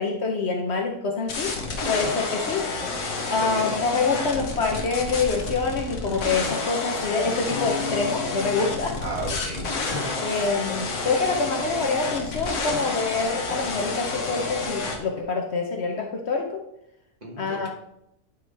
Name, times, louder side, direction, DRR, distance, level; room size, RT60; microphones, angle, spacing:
voice 1, 0.0-1.6 1.8-2.7 3.3-9.0 10.2-16.6 17.4-17.7, left 4 dB, 55° left, 2 dB, 1.0 m, -26 dB
sound 1, 1.3-15.0, left 3 dB, 80° left, 1.5 m, -30 dB
sound 2, 7.5-11.6, left 5 dB, 35° left, 0.5 m, -38 dB
voice 2, 9.0-10.5 17.2-17.7, right 2 dB, 30° right, -2 dB, 1.6 m, -34 dB
9.2 x 4.9 x 3.3 m, 0.80 s
omnidirectional pair, 1.4 m